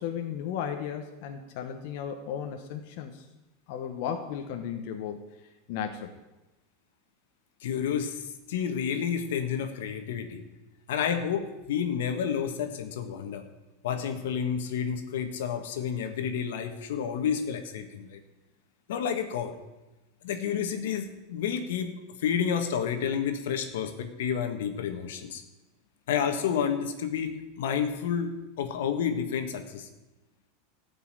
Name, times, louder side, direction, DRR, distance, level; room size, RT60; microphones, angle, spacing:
voice 1, 0.0-3.2 3.7-5.3 5.7-6.2, left 8 dB, 55° left, 4 dB, 1.2 m, -35 dB
voice 2, 7.6-10.4 10.9-13.4 13.8-18.2 18.9-19.6 20.2-25.4 26.1-29.9, left 7 dB, 80° left, 7 dB, 1.5 m, -30 dB
13.5 x 5.6 x 9.0 m, 1.1 s
supercardioid pair, 150°, 0 cm